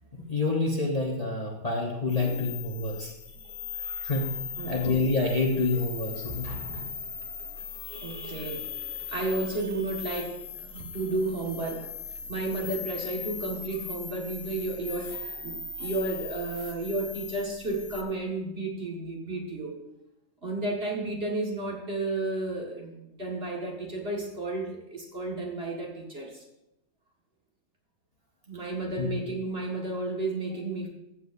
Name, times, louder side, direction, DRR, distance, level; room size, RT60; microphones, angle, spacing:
voice 1, 0.1-3.1 4.0-4.3 4.6-6.9 29.0-29.1, left 3 dB, 30° left, -2 dB, 1.2 m, -28 dB
sound 1, 2.1-18.0, left 6 dB, 65° left, 1.3 m, -39 dB
voice 2, 2.2-2.5 3.3-4.1 4.6-5.0 6.6-6.8 7.8-19.8 20.4-26.4 28.5-30.9, right 2 dB, 45° right, -2 dB, 2.0 m, -33 dB
14.5 x 7.7 x 2.7 m, 0.89 s
omnidirectional pair, 1.4 m